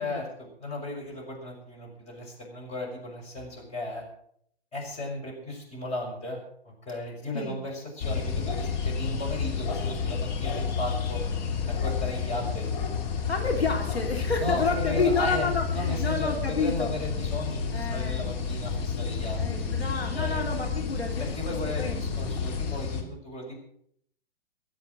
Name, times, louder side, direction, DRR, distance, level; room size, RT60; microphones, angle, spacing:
voice 1, 0.0-4.0 4.7-6.4 6.6-11.2 11.7-12.7 14.4-19.7 20.1-20.4 21.2-23.6, left 1 dB, 20° left, -1 dB, 6.4 m, -35 dB
sound 1, 8.0-23.0, left 6 dB, 45° left, 2.8 m, -30 dB
voice 2, 13.3-16.9 17.7-18.2 19.4-22.2, left 4 dB, 85° left, 1 dB, 3.1 m, -30 dB
23.0 x 7.9 x 6.2 m, 0.66 s
figure-of-eight pair, 115°, 31 cm